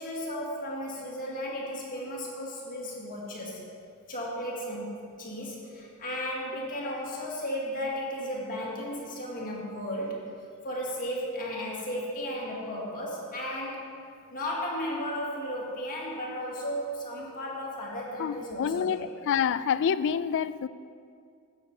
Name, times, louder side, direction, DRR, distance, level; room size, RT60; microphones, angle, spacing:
voice 1, 0.0-3.6 4.1-10.2 10.6-13.9 14.3-19.1, equal, 40° left, -4 dB, 2.2 m, -34 dB
voice 2, 18.2-20.7, left 7 dB, 55° left, 16 dB, 0.3 m, -27 dB
12.0 x 8.7 x 4.8 m, 2.3 s
head